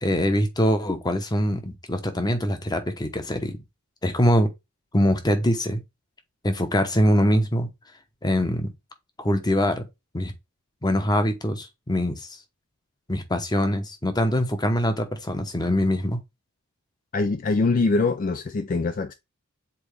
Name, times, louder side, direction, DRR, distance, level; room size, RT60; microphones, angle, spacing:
voice 1, 0.0-3.6 4.0-4.5 4.9-5.8 6.4-7.7 8.2-8.7 9.2-9.8 10.1-10.3 10.8-12.3 13.1-16.2, equal, 20° left, 0.9 m, -23 dB
voice 2, 17.1-19.1, left 3 dB, 40° left, 0.4 m, -23 dB
7.0 x 4.1 x 3.3 m
head